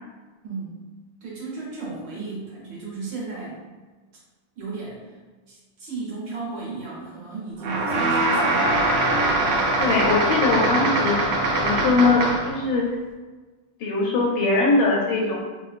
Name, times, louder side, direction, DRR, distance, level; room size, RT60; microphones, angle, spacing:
voice 1, 1.2-3.6 4.6-5.1 5.5-8.9, right 4 dB, 65° right, -6 dB, 1.4 m, -34 dB
sound 1, 7.6-12.6, right 2 dB, 90° right, 0.9 m, -22 dB
voice 2, 9.8-11.2 11.6-12.8 13.8-15.4, left 3 dB, 75° left, -2 dB, 1.2 m, -21 dB
4.6 x 2.0 x 2.4 m, 1.3 s
omnidirectional pair, 2.4 m